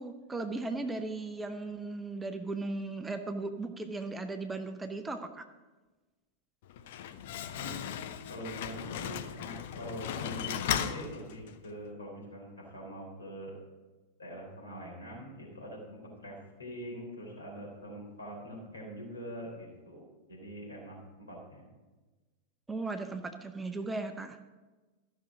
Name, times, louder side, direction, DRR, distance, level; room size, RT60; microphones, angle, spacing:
voice 1, 0.0-5.4 22.7-24.4, right 3 dB, 10° right, 7 dB, 0.7 m, -37 dB
Slam, 6.6-11.7, left 9 dB, 55° left, 0.6 m, -37 dB
voice 2, 8.3-13.5 14.2-21.6, equal, 75° left, -2 dB, 3.8 m, -44 dB
14.0 x 6.2 x 5.0 m, 1.2 s
figure-of-eight pair, 90°, 0 cm